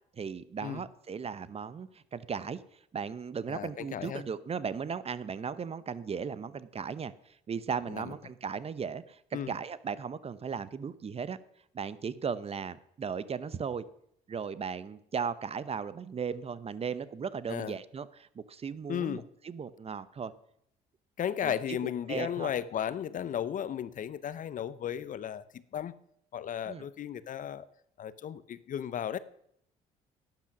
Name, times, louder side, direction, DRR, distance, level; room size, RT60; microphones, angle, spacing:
voice 1, 0.1-2.6 2.9-11.4 11.7-13.8 14.3-20.3 21.4-21.8 22.1-22.5 26.7-26.8, right 6 dB, 35° right, 16 dB, 0.8 m, -37 dB
voice 2, 3.5-4.2 7.9-8.1 9.3-9.5 17.5-17.7 18.9-19.2 21.2-25.9 26.3-27.7 28.0-29.2, left 9 dB, 55° left, 16 dB, 0.7 m, -35 dB
12.0 x 8.9 x 6.1 m, 0.72 s
supercardioid pair, 70°, 17 cm